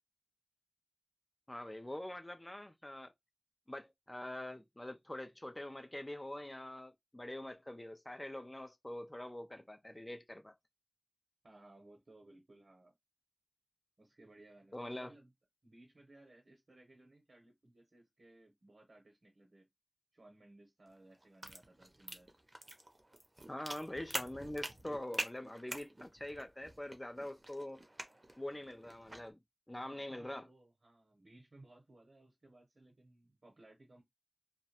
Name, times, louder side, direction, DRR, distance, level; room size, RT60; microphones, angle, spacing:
voice 1, 1.5-3.1 3.7-10.6 14.7-15.1 23.5-27.8 28.4-29.4 29.7-30.5, left 1 dB, 25° left, 0.3 m, -44 dB
voice 2, 11.4-13.0 14.0-15.3 15.6-19.7 20.1-22.3 30.1-34.0, right 2 dB, 80° right, 0.7 m, -61 dB
sound 1, 20.9-29.3, right 1 dB, 35° right, 0.5 m, -46 dB
2.3 x 2.0 x 2.8 m
wide cardioid pair, 55°, 0 cm